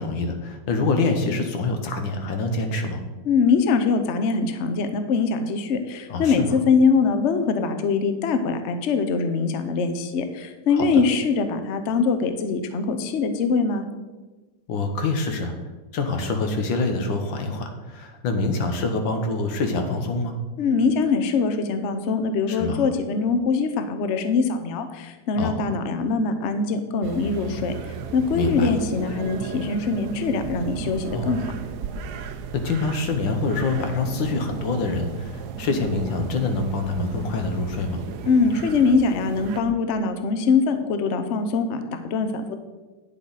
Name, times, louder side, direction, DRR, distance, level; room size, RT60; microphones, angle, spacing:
voice 1, 0.0-3.0 6.1-6.5 10.7-11.0 14.7-15.6 15.9-20.4 22.5-22.9 25.4-25.7 28.3-28.8 31.1-31.4 32.5-38.0, left 3 dB, 90° left, 5 dB, 1.8 m, -26 dB
voice 2, 3.3-13.9 20.6-31.5 38.3-42.6, left 4 dB, 55° left, 8 dB, 0.8 m, -23 dB
sound 1, 27.0-39.6, right 6 dB, 70° right, 1.0 m, -35 dB
9.6 x 7.4 x 4.0 m, 1.2 s
omnidirectional pair, 2.0 m